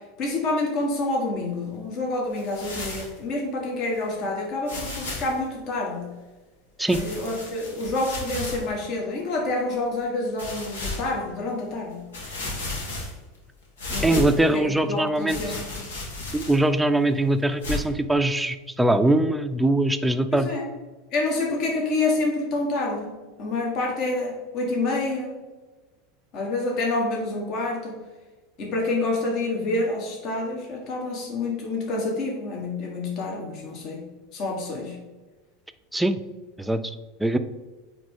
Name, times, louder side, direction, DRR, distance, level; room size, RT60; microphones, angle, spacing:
voice 1, 0.2-6.1 6.9-12.0 13.9-14.2 14.5-15.9 20.3-20.7 21.1-23.1 23.4-25.4 26.3-28.0 28.6-34.0 34.3-35.0, left 2 dB, 50° left, -1 dB, 1.4 m, -28 dB
sound 1, 2.3-3.2 3.9-4.0 4.6-5.4 6.9-8.7 9.3-9.4 10.4-11.1 11.7-11.8 12.1-13.4 13.8-14.5 15.3-16.7 17.6-17.8, left 2 dB, 90° left, 1.5 m, -33 dB
voice 2, 14.0-15.4 16.3-20.5 35.9-36.2 36.6-37.4, right 1 dB, 5° right, 9 dB, 0.4 m, -22 dB
8.6 x 3.2 x 3.7 m, 1.2 s
hypercardioid pair, 100°, 0 cm